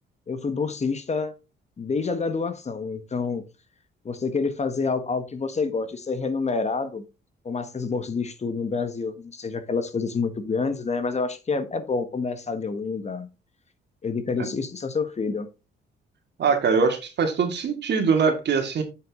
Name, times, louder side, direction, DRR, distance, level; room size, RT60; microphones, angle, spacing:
voice 1, 0.3-1.3 1.8-3.4 4.0-7.0 7.4-13.3 14.0-15.5, left 4 dB, 35° left, 1.3 m, -28 dB
voice 2, 16.4-18.8, right 5 dB, 60° right, 2.3 m, -22 dB
8.1 x 6.5 x 3.7 m
cardioid pair, 90°, 20 cm